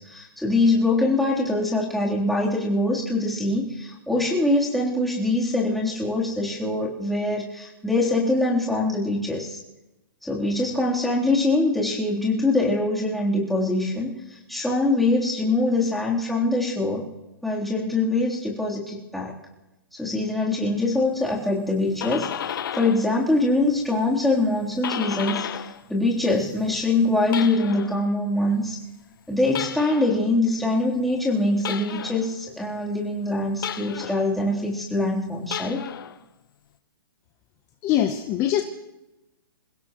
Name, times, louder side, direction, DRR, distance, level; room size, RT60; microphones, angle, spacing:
voice 1, 0.0-9.6 10.2-14.1 14.5-17.0 17.4-19.3 19.9-25.5 25.9-28.8 29.3-35.8, left 2 dB, ahead, -5 dB, 3.4 m, -23 dB
sound 1, 21.7-23.1 23.4-25.8 26.1-28.0 29.5-30.2 31.6-32.3 33.6-34.3 35.4-36.2, left 9 dB, 65° left, 1.1 m, -33 dB
voice 2, 37.8-38.6, left 11 dB, 25° left, 6 dB, 0.9 m, -22 dB
28.0 x 16.5 x 3.1 m, 0.99 s
hypercardioid pair, 145°, 12 cm